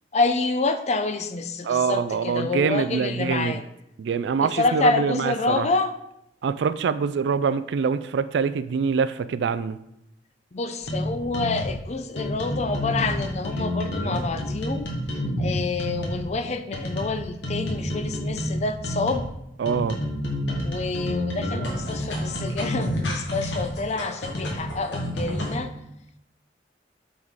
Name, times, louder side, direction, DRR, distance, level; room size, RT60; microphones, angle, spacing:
voice 1, 0.1-3.6 4.4-5.9 10.5-14.9 15.4-19.2 20.6-25.7, left 3 dB, 40° left, 9 dB, 0.5 m, -27 dB
voice 2, 1.6-3.6 4.0-5.7 6.4-9.8 19.6-20.0, right 6 dB, 75° right, 14 dB, 0.3 m, -24 dB
sound 1, 10.8-11.8 12.2-16.3 16.7-19.3 19.7-25.5, equal, 90° left, 1.4 m, -29 dB
7.7 x 4.1 x 3.6 m, 0.81 s
head